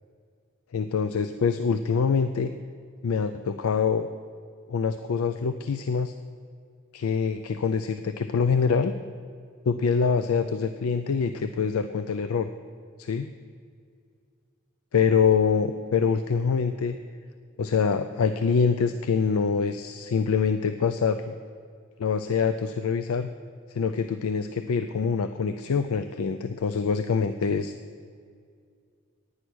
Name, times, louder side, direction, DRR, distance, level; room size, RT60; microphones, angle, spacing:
voice 1, 0.7-2.5 3.0-4.1 4.7-6.1 6.9-8.9 9.7-12.5 13.0-13.3 14.9-17.0 17.6-21.3 22.0-23.3 23.7-27.7, left 5 dB, 80° left, 9 dB, 0.4 m, -25 dB
9.9 x 9.6 x 6.1 m, 2.2 s
head